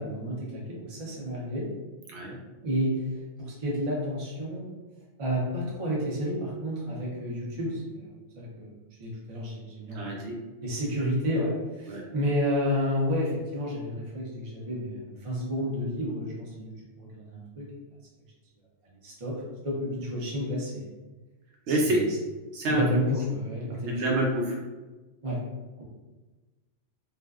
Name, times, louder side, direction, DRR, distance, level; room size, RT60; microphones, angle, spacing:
voice 1, 0.0-1.6 2.6-4.7 5.2-8.1 8.4-8.7 9.0-10.2 10.6-17.7 18.8-19.4 19.6-20.9 21.7-22.0 22.7-24.0 25.2-25.4, equal, 40° right, -4 dB, 0.5 m, -31 dB
voice 2, 9.9-10.4 11.9-12.0 21.7-22.0 22.5-22.8 23.9-24.6, right 1 dB, 75° right, -2 dB, 0.9 m, -27 dB
2.5 x 2.1 x 2.3 m, 1.2 s
omnidirectional pair, 1.2 m